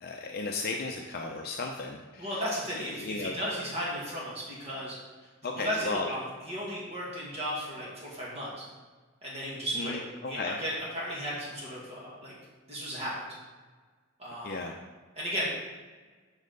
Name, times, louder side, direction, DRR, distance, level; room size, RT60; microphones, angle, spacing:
voice 1, 0.0-2.3 2.8-3.3 5.4-6.1 9.7-10.6 14.4-14.7, left 3 dB, 50° left, 2 dB, 0.6 m, -35 dB
voice 2, 2.2-5.0 5.6-8.7 9.2-10.0 10.3-12.3 12.7-13.1 14.2-14.6 15.2-15.5, equal, 30° right, -6 dB, 1.9 m, -35 dB
7.2 x 6.3 x 3.9 m, 1.4 s
head